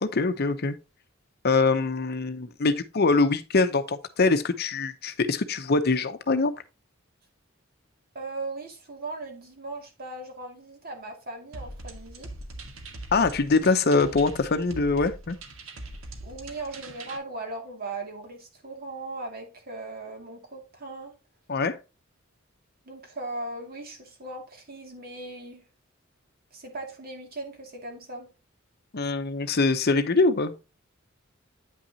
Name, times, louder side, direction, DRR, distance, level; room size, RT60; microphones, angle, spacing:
voice 1, 0.0-0.8 1.4-6.5 13.1-15.4 21.5-21.8 28.9-30.5, left 3 dB, 50° left, 0.7 m, -23 dB
voice 2, 8.1-12.3 16.2-21.1 22.9-25.6 26.5-28.3, right 2 dB, 50° right, 2.3 m, -38 dB
sound 1, 11.5-17.2, right 2 dB, 85° right, 1.4 m, -42 dB
9.0 x 5.9 x 2.8 m
head